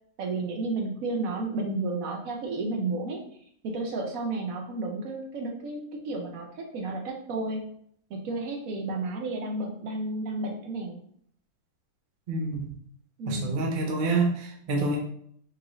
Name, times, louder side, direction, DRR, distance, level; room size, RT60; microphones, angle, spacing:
voice 1, 0.2-3.2 3.6-7.6 8.1-11.0 13.2-13.6, right 2 dB, 70° right, 1 dB, 1.1 m, -32 dB
voice 2, 12.3-12.7 13.3-15.0, right 3 dB, 50° right, 0 dB, 0.6 m, -27 dB
4.6 x 2.4 x 3.0 m, 0.64 s
omnidirectional pair, 1.6 m